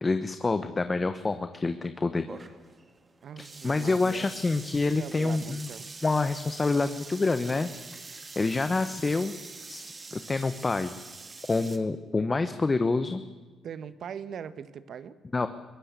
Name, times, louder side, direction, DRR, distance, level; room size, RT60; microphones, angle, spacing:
voice 1, 0.0-2.3 3.4-5.7 6.0-7.7 8.3-9.3 9.7-10.9 11.5-13.2 15.3-15.5, left 3 dB, 25° left, 10 dB, 1.1 m, -27 dB
sound 1, 2.3-11.8, right 3 dB, 30° right, 2.1 m, -45 dB
voice 2, 3.2-4.4 5.0-5.9 13.6-15.1, right 8 dB, 65° right, 14 dB, 1.2 m, -41 dB
22.0 x 17.5 x 8.3 m, 1.4 s
cardioid pair, 90°, 0 cm